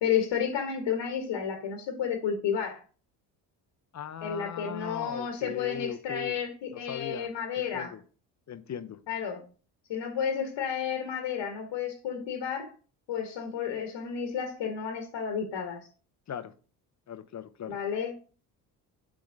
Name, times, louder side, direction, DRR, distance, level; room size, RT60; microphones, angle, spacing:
voice 1, 0.0-2.8 4.2-7.9 9.1-9.4 9.9-12.7 13.1-15.9 17.7-18.1, left 7 dB, 65° left, 4 dB, 1.4 m, -31 dB
voice 2, 3.9-6.3 6.7-7.3 7.7-8.0 8.5-9.0 16.3-16.5 17.1-17.8, left 8 dB, 35° left, 12 dB, 0.7 m, -38 dB
7.0 x 3.8 x 3.9 m, 0.38 s
hypercardioid pair, 60°, 47 cm